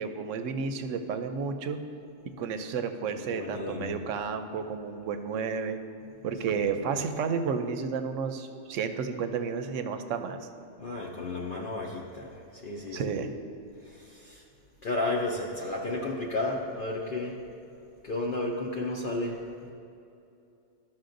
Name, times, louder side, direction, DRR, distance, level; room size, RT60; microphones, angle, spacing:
voice 1, 0.0-1.8 2.4-5.8 6.2-10.5 12.9-13.3, right 6 dB, 80° right, 8 dB, 0.9 m, -31 dB
voice 2, 3.1-3.9 6.5-6.7 10.8-13.1 13.8-14.4 14.8-17.4 18.0-19.7, left 2 dB, 50° left, -3 dB, 0.7 m, -33 dB
13.0 x 5.9 x 2.6 m, 2.7 s
omnidirectional pair, 1.3 m